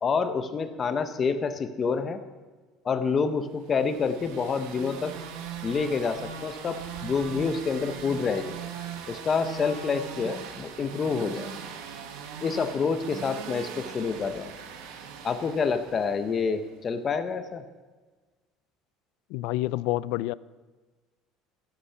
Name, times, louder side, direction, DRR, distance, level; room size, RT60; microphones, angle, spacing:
voice 1, 0.0-2.2 2.8-5.1 5.6-8.6 9.1-11.5 12.4-14.5 15.2-17.6, left 5 dB, 25° left, 0.6 m, -28 dB
sound 1, 3.7-16.6, right 7 dB, 80° right, 1.2 m, -40 dB
voice 2, 19.3-20.3, left 17 dB, 70° left, 0.3 m, -28 dB
13.0 x 8.2 x 5.7 m
cardioid pair, 165°, 0 cm